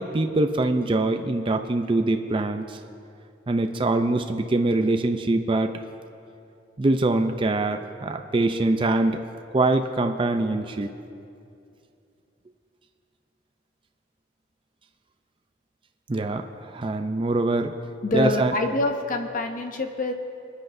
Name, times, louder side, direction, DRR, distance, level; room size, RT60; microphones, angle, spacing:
voice 1, 0.0-2.8 3.5-5.7 6.8-9.2 9.5-10.9 16.1-17.7 18.1-18.5, right 2 dB, 30° right, 6 dB, 0.5 m, -23 dB
voice 2, 18.0-20.1, left 2 dB, 50° left, 5 dB, 0.9 m, -26 dB
27.5 x 10.0 x 2.6 m, 2.6 s
head